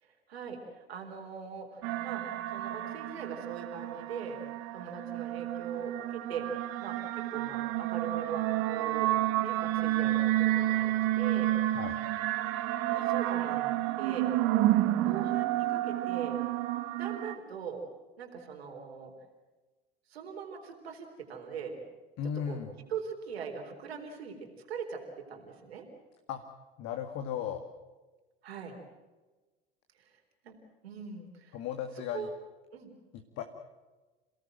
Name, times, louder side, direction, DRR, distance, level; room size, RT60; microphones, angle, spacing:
voice 1, 0.0-2.2 2.5-4.4 4.7-6.5 6.8-9.1 9.4-11.5 12.9-13.7 14.0-14.3 15.0-16.4 16.9-17.8 18.2-19.1 20.1-21.8 22.5-22.6 22.9-24.4 24.7-25.9 28.4-28.8 30.0-30.6 30.8-31.6 32.1-32.3 32.7-32.9, right 6 dB, 70° right, 2 dB, 4.1 m, -41 dB
sound 1, 1.8-17.3, right 15 dB, 50° right, 1.6 m, -30 dB
voice 2, 22.2-22.7 26.3-26.4 26.8-27.7 31.5-32.3 33.1-33.4, left 9 dB, 50° left, 5 dB, 2.1 m, -36 dB
29.0 x 18.0 x 7.7 m, 1.2 s
figure-of-eight pair, 70°, 32 cm